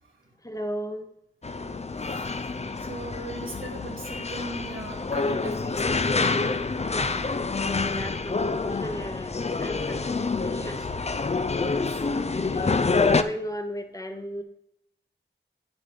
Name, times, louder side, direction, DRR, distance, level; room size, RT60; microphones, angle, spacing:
voice 1, 0.4-1.1 6.9-7.2 7.7-10.1 10.4-11.1 11.9-14.4, equal, 15° left, 7 dB, 0.9 m, -36 dB
sound 1, 1.4-13.2, left 4 dB, 35° left, 0.4 m, -27 dB
voice 2, 2.8-6.3 7.6-8.0 10.6-10.9 11.6-12.0, right 2 dB, 80° right, -2 dB, 1.5 m, -40 dB
9.0 x 7.0 x 3.5 m, 0.80 s
wide cardioid pair, 50°, 20 cm